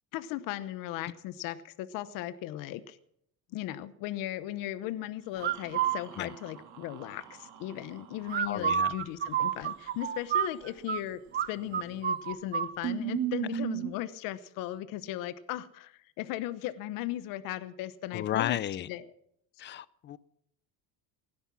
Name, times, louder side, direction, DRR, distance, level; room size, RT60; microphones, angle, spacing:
voice 1, 0.1-3.0 3.5-11.2 11.5-19.1, left 13 dB, 65° left, 1.0 m, -37 dB
sound 1, 5.4-6.0 8.3-11.0 11.3-11.5 11.7-12.7, right 9 dB, 30° right, 0.7 m, -29 dB
sound 2, 5.4-8.8 11.5-12.0 12.3-12.4 12.8-13.9, right 9 dB, 50° right, 2.1 m, -37 dB
voice 2, 8.5-8.9 18.1-18.9 19.6-20.2, left 11 dB, 30° left, 0.5 m, -33 dB
17.0 x 10.0 x 6.1 m
cardioid pair, 150°, 36 cm